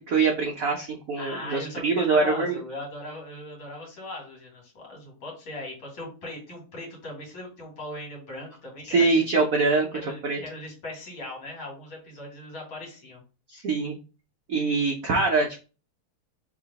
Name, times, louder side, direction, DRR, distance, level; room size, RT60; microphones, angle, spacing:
voice 1, 0.0-2.6 8.8-9.9 10.2-10.4 13.5-14.0 14.5-15.6, right 4 dB, 75° right, 0 dB, 0.7 m, -24 dB
voice 2, 1.2-9.3 9.9-13.2, left 1 dB, 65° left, -1 dB, 2.6 m, -39 dB
3.8 x 3.2 x 4.0 m, 0.33 s
omnidirectional pair, 2.4 m